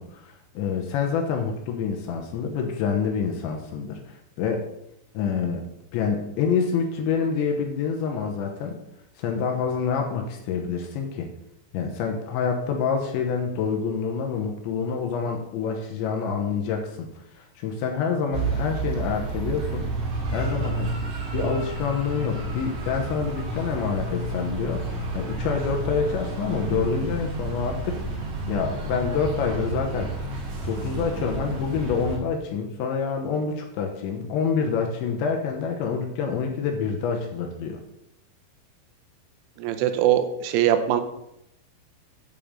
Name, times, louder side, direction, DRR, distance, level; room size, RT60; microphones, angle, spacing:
voice 1, 0.0-4.0 4.4-4.7 5.1-5.6 5.9-8.8 9.2-11.3 11.7-17.1 17.4-19.9 20.3-20.9 21.3-28.2 28.5-30.3 30.6-37.8, left 6 dB, 75° left, 2 dB, 3.0 m, -27 dB
sound 1, 18.3-32.2, right 2 dB, 50° right, 2.5 m, -30 dB
voice 2, 39.6-41.0, right 10 dB, 80° right, 8 dB, 3.2 m, -22 dB
8.8 x 5.4 x 6.4 m, 0.80 s
omnidirectional pair, 5.8 m